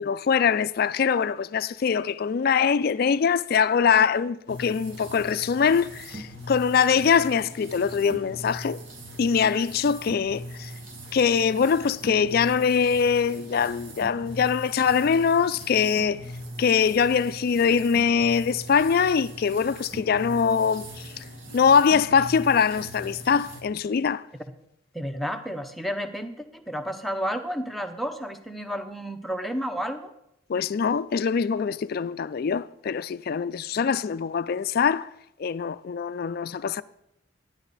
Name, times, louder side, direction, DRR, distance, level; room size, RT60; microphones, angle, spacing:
voice 1, 0.0-8.8 9.2-10.7 11.1-16.2 16.6-21.2 21.5-24.2 30.5-35.1 35.4-36.8, left 6 dB, 50° left, 0.3 m, -23 dB
sound 1, 4.5-23.6, right 1 dB, 70° right, 1.8 m, -41 dB
voice 2, 24.9-30.1, equal, ahead, 0.7 m, -31 dB
11.0 x 10.5 x 4.0 m
head